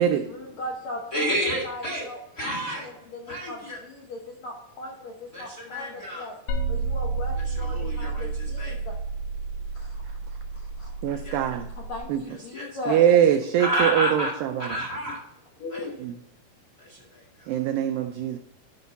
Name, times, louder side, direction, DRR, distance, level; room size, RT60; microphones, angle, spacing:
voice 1, 0.0-1.3 1.6-2.5 2.8-6.3 6.7-9.0 9.7-10.1 10.5-10.9 11.8-13.0 15.6-15.9, left 2 dB, 70° left, -1 dB, 1.7 m, -38 dB
voice 2, 1.1-2.0 2.3-2.9 3.3-3.8 5.3-6.3 7.3-8.8 11.1-11.5 12.3-12.8 13.6-14.3 14.6-15.2 15.7-15.9 16.8-17.5, equal, 35° left, -2 dB, 1.4 m, -30 dB
sound 1, 6.5-12.0, right 3 dB, 90° left, 2.9 m, -31 dB
voice 3, 11.0-11.7 12.1-12.2 12.9-14.8 16.0-16.1 17.5-18.4, right 10 dB, 90° right, 7 dB, 2.0 m, -22 dB
11.5 x 5.3 x 4.0 m, 0.89 s
omnidirectional pair, 4.7 m